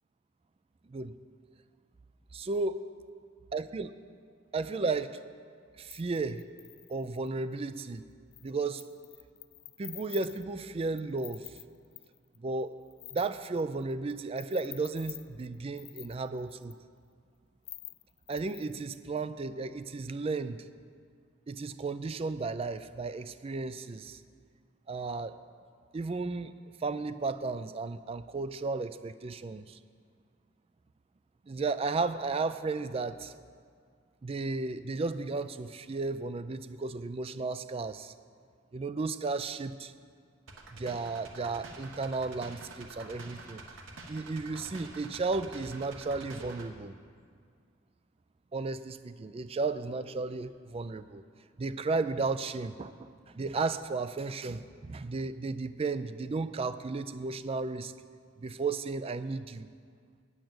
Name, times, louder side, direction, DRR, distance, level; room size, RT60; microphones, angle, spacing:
voice 1, 2.3-2.8 3.5-3.9 4.5-5.2 5.8-6.4 6.9-8.0 8.4-8.8 9.8-11.5 12.4-12.8 13.1-16.8 18.3-20.6 21.5-24.2 24.9-25.3 25.9-26.5 26.8-29.8 31.5-33.3 34.2-38.1 38.7-39.9 40.8-43.6 44.1-47.0 48.5-51.2 51.6-53.1 53.3-57.9 58.4-59.7, right 3 dB, 30° right, 12 dB, 0.4 m, -34 dB
sound 1, 5.9-7.3 8.3-8.5 8.8-12.4 12.6-14.1 14.4-16.7 17.7-19.0, left 19 dB, 55° left, 0.3 m, -48 dB
sound 2, 40.5-46.7, right 3 dB, 85° right, 1.3 m, -47 dB
9.0 x 8.7 x 7.8 m, 2.1 s
head